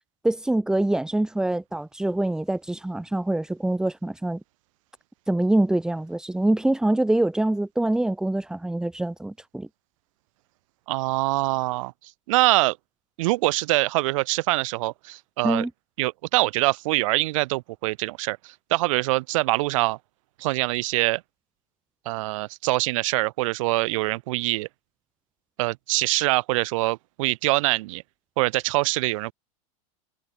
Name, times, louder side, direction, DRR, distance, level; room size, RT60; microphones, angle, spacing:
voice 1, 0.2-4.4 5.3-9.7 15.4-15.7, right 1 dB, 5° right, 2.9 m, -24 dB
voice 2, 10.9-11.9 12.3-12.8 13.2-15.6 16.0-20.0 20.4-21.2 22.1-24.7 25.6-28.0 28.4-29.3, right 20 dB, 60° right, 2.5 m, -24 dB
supercardioid pair, 155°, 18 cm